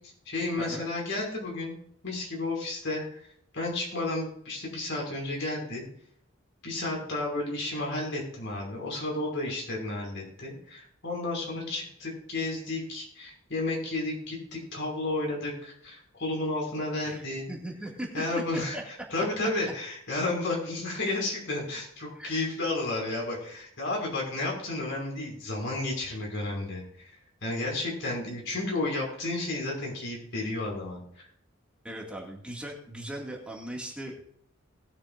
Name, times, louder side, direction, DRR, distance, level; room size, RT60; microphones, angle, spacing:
voice 1, 0.3-1.7 2.0-3.2 3.5-5.8 6.6-17.5 18.1-27.1 27.4-31.3, left 2 dB, 60° left, -1 dB, 5.5 m, -32 dB
voice 2, 17.0-18.2 18.5-18.8 22.1-22.3 31.8-34.2, right 1 dB, 5° right, -2 dB, 2.0 m, -38 dB
20.0 x 8.8 x 2.5 m, 0.67 s
head